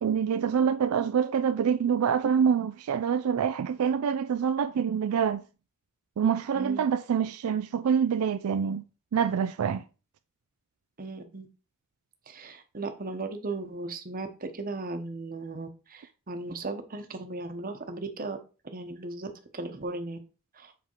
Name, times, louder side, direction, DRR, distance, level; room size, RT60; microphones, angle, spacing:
voice 1, 0.0-5.4 6.2-8.8 9.1-9.8, right 7 dB, 80° right, 0.4 m, -26 dB
voice 2, 6.5-6.9 11.0-11.5 12.3-18.4 18.7-20.2 20.5-20.7, right 3 dB, 40° right, 1.0 m, -37 dB
7.2 x 3.6 x 4.5 m
head